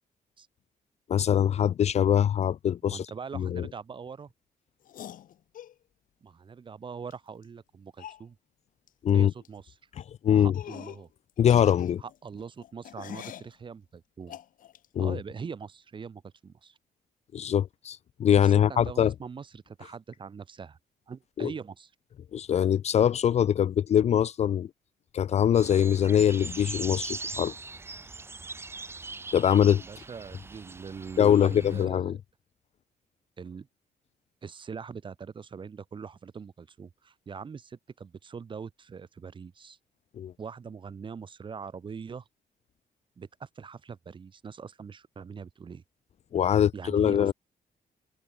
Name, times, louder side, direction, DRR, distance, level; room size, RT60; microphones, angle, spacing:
voice 1, 1.1-3.1 3.3-3.7 9.0-9.3 10.2-10.5 11.4-12.0 15.0-15.2 17.3-19.1 21.4-21.5 22.3-24.7 25.1-27.5 29.3-29.8 31.2-32.2 40.2-40.3 46.3-47.3, left 9 dB, 45° left, 0.5 m, -23 dB
voice 2, 2.8-4.3 6.2-8.4 9.1-9.8 10.3-11.1 12.0-14.4 15.0-16.8 18.4-20.8 21.1-21.9 29.8-32.2 33.4-33.7 34.4-39.8 40.4-42.3 43.2-45.8 46.7-47.3, right 6 dB, 30° right, 1.9 m, -42 dB
sound 1, 4.9-5.7 7.1-7.2 7.4-7.5 8.0-8.2 8.9-9.1 9.4-9.6 10.0-10.1 10.5-11.1 11.4-13.5 14.3-14.9, left 11 dB, 60° left, 0.9 m, -44 dB
sound 2, 25.5-31.8, right 3 dB, 15° right, 0.8 m, -40 dB
cardioid pair, 165°, 16 cm